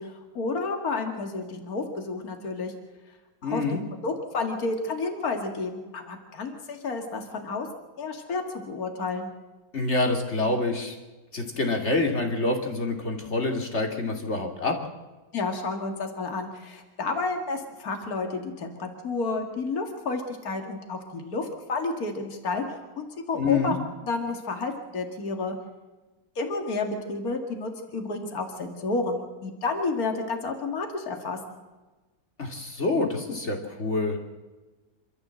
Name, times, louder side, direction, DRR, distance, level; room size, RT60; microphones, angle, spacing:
voice 1, 0.0-2.7 3.4-7.7 8.0-9.3 15.3-23.7 24.0-25.6 26.4-31.4, left 3 dB, 60° left, 4 dB, 2.6 m, -31 dB
voice 2, 3.4-3.8 9.7-10.9 11.3-14.8 23.4-23.7 32.4-34.2, left 3 dB, 40° left, 3 dB, 2.9 m, -26 dB
27.5 x 13.5 x 7.7 m, 1.2 s
omnidirectional pair, 1.8 m